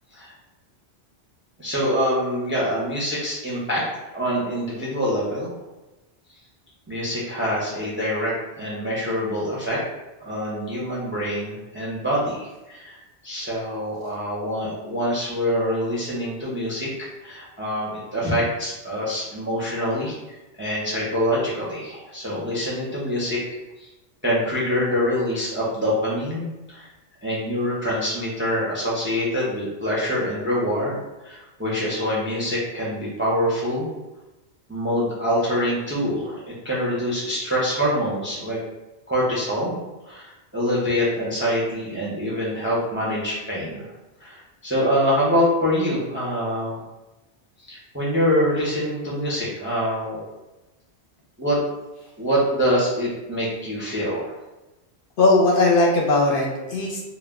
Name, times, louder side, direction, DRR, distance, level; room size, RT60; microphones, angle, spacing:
voice 1, 1.6-3.8 4.1-5.5 6.9-9.8 10.2-13.0 13.2-16.9 17.2-23.4 23.8-23.9 24.2-26.9 27.2-33.9 34.7-38.6 39.1-39.8 40.0-43.9 44.2-46.8 47.6-50.2 51.4-51.6 52.2-54.4, equal, 20° right, -6 dB, 0.4 m, -25 dB
voice 2, 55.2-57.1, left 2 dB, 65° left, -2 dB, 0.7 m, -18 dB
2.1 x 2.1 x 3.4 m, 1.1 s
omnidirectional pair, 1.1 m